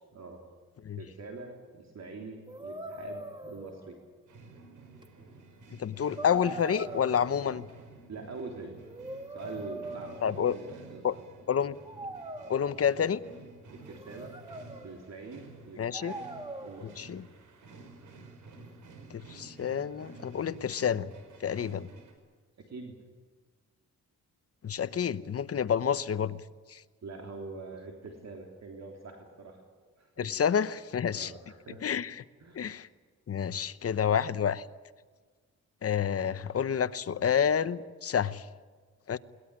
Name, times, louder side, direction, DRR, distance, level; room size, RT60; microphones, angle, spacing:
voice 1, 0.1-0.4 1.0-4.0 8.1-8.7 9.3-11.2 13.7-14.3 14.8-16.2 16.6-17.0 22.6-23.0 27.0-29.6 29.9-30.3 31.1-31.9 32.4-32.7 36.1-36.4, right 3 dB, 55° right, 2 dB, 3.5 m, -44 dB
sound 1, 2.5-4.2 5.0-5.1 6.2-7.7 8.7-10.9 11.8-13.1 13.8-15.1 15.9-16.9, right 1 dB, 15° right, 1.8 m, -42 dB
sound 2, 4.3-22.1, right 3 dB, 75° right, 5.3 m, -51 dB
voice 2, 5.7-7.7 10.2-10.6 11.0-11.2 11.5-11.8 12.5-13.2 15.8-16.1 16.8-17.3 19.1-21.1 21.4-21.9 24.6-26.4 26.7-26.8 30.2-31.3 31.8-32.2 32.5-32.9 33.3-34.7 35.8-38.5 39.1-39.2, left 8 dB, 50° left, 15 dB, 0.9 m, -29 dB
21.5 x 20.0 x 9.8 m, 1.5 s
cardioid pair, 110°, 31 cm